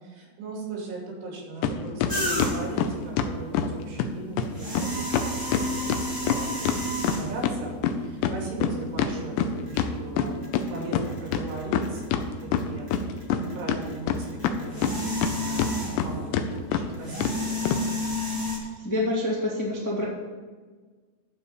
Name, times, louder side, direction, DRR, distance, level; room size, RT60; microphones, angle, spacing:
voice 1, 0.0-7.8 8.0-10.3 10.7-17.6, right 2 dB, 80° right, -3 dB, 5.2 m, -39 dB
sound 1, 1.6-1.7 2.0-3.7 4.0-4.1 4.4-4.5 4.7-4.9 5.1-7.6 7.8-10.6 10.9-11.0 11.3-12.2 12.5-13.4 13.7-15.3 15.6-16.1 16.3-16.5 16.7-16.8 17.2-17.3 17.7-17.8, left 8 dB, 80° left, 2.7 m, -25 dB
sound 2, 2.1-2.8 4.4-7.5 8.3-8.4 9.6-9.8 10.2-12.6 12.9-16.2 16.9-18.6, left 1 dB, 15° right, 0.6 m, -31 dB
voice 2, 18.8-20.0, left 1 dB, 10° left, -6 dB, 0.9 m, -27 dB
12.0 x 4.3 x 8.0 m, 1.4 s
omnidirectional pair, 5.4 m